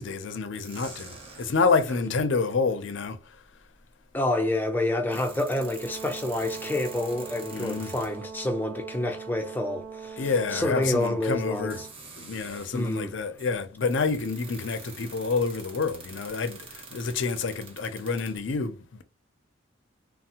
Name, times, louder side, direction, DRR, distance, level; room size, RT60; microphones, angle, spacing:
voice 1, 0.0-3.2 7.5-7.9 10.2-11.8 12.2-19.0, left 4 dB, 65° left, 0.5 m, -28 dB
sound 1, 0.5-2.0 3.5-3.6 4.9-8.4 10.6-10.7 11.6-13.1 13.4-18.4, right 4 dB, 25° right, 0.7 m, -46 dB
voice 2, 4.1-11.9 12.7-13.1, left 1 dB, 10° left, 0.5 m, -28 dB
Brass instrument, 5.5-11.9, right 6 dB, 65° right, 0.5 m, -41 dB
3.2 x 2.0 x 2.8 m
head